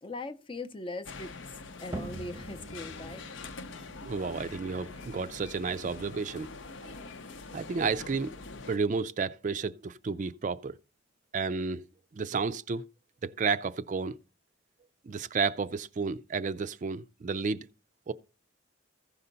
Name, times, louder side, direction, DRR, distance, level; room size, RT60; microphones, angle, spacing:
voice 1, 0.0-3.2, left 2 dB, 25° left, 0.5 m, -40 dB
sound 1, 1.0-8.8, left 3 dB, 70° left, 0.7 m, -44 dB
sound 2, 1.9-7.4, right 2 dB, 15° right, 0.7 m, -46 dB
voice 2, 4.1-6.5 6.8-6.9 7.5-8.3 8.7-10.8 11.3-11.8 12.1-12.8 13.2-14.2 15.1-17.7 18.1-18.2, right 4 dB, 40° right, 0.4 m, -31 dB
15.0 x 5.5 x 3.9 m
head